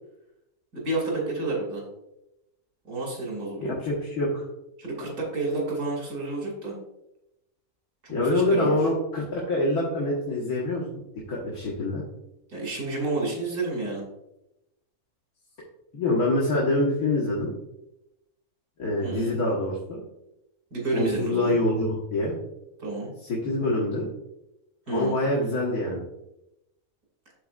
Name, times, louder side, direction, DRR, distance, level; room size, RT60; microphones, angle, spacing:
voice 1, 0.7-1.8 2.9-3.7 4.8-6.8 8.0-8.8 12.5-14.0 19.0-19.4 20.7-21.6 22.8-23.1 24.9-25.2, right 2 dB, 90° right, -2 dB, 3.0 m, -30 dB
voice 2, 3.6-4.4 8.1-10.8 11.2-12.0 15.9-17.5 18.8-20.0 20.9-22.4 23.2-24.1 24.9-26.0, left 1 dB, 80° left, -5 dB, 1.9 m, -25 dB
12.5 x 4.2 x 2.5 m, 0.88 s
omnidirectional pair, 1.6 m